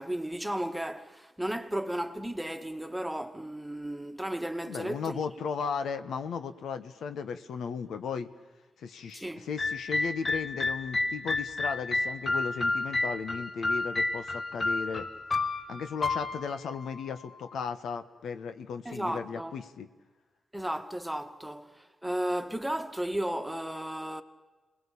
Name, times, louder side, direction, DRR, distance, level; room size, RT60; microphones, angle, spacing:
voice 1, 0.0-5.2 9.1-9.5 18.9-19.5 20.5-24.2, right 1 dB, 5° right, 1.9 m, -34 dB
voice 2, 4.7-8.3 8.8-15.1 15.7-19.9, left 6 dB, 80° left, 1.3 m, -36 dB
sound 1, 9.6-17.6, left 2 dB, 35° left, 1.5 m, -31 dB
28.0 x 20.5 x 8.6 m
cardioid pair, 65°, 0 cm